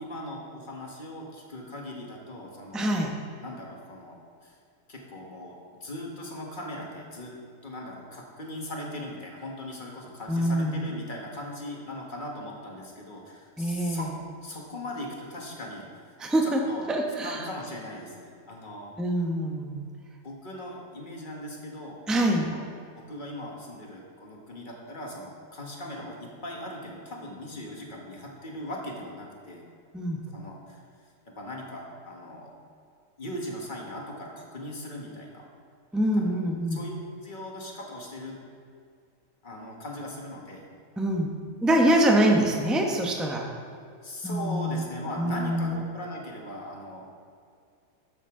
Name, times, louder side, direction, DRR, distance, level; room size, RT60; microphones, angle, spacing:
voice 1, 0.0-3.1 3.4-4.6 4.9-5.5 5.8-7.3 7.6-14.1 14.4-16.1 16.4-16.9 17.2-18.9 20.2-22.0 22.3-22.7 23.1-29.6 30.3-30.8 31.2-32.5 33.2-35.5 36.2-36.3 36.7-36.9 37.2-38.4 39.4-40.7 44.0-47.1, left 1 dB, 30° left, -1 dB, 1.5 m, -39 dB
voice 2, 2.7-3.1 10.3-10.8 13.6-14.1 16.2-16.6 16.9-17.4 19.0-19.9 22.1-22.5 29.9-30.2 35.9-36.8 41.0-41.3 41.6-43.5 44.2-44.8 45.2-45.8, right 1 dB, ahead, 1 dB, 0.5 m, -25 dB
12.5 x 6.9 x 3.7 m, 2.3 s
omnidirectional pair, 1.7 m